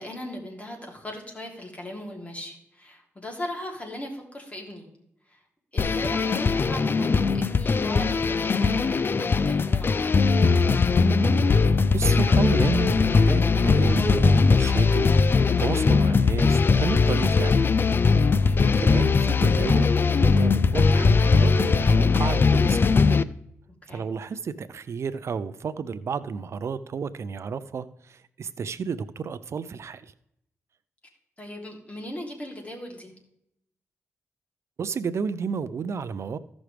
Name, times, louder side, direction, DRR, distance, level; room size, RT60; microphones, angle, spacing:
voice 1, 0.0-4.9 5.3-5.4 5.7-10.1 18.2-18.7 23.8-24.1 31.4-33.1, left 1 dB, 25° left, 0 dB, 3.1 m, -38 dB
sound 1, 5.8-23.2, left 4 dB, 45° left, 0.4 m, -20 dB
voice 2, 11.9-17.5 18.4-23.0 23.9-30.1 34.8-36.4, right 5 dB, 65° right, 14 dB, 0.5 m, -31 dB
15.0 x 6.2 x 3.3 m, 0.76 s
cardioid pair, 70°, 5 cm